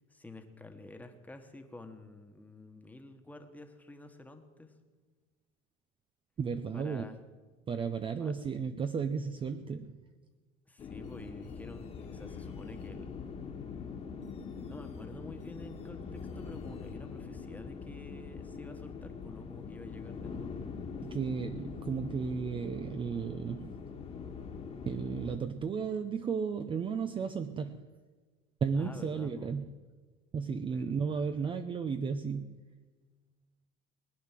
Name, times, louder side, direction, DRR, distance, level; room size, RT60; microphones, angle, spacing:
voice 1, 0.1-4.7 6.7-7.2 8.2-8.3 10.7-13.1 14.7-20.5 28.8-29.5 30.7-31.5, left 2 dB, 5° left, 5 dB, 1.4 m, -49 dB
voice 2, 6.4-7.0 7.7-10.0 21.0-23.8 24.9-27.9 28.6-29.7 30.3-32.6, right 6 dB, 25° right, 9 dB, 0.6 m, -34 dB
sound 1, 10.8-25.4, left 5 dB, 30° left, 1.6 m, -43 dB
20.5 x 9.3 x 7.5 m, 1.4 s
cardioid pair, 140°, 21 cm